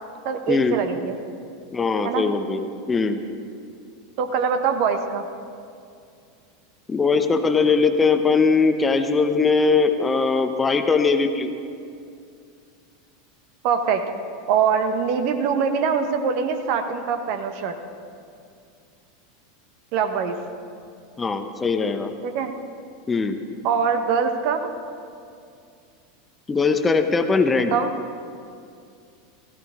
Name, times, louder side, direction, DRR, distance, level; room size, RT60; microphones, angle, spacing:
voice 1, 0.2-1.2 2.0-2.3 4.2-5.3 13.6-14.1 14.5-17.7 19.9-20.4 22.2-22.5 23.6-24.7 27.7-27.9, right 6 dB, 50° right, 7 dB, 1.1 m, -23 dB
voice 2, 1.7-3.2 6.9-11.5 21.2-22.1 23.1-23.4 26.5-27.8, left 4 dB, 15° left, 8 dB, 0.8 m, -20 dB
16.5 x 15.0 x 3.7 m, 2.4 s
figure-of-eight pair, 85°, 0 cm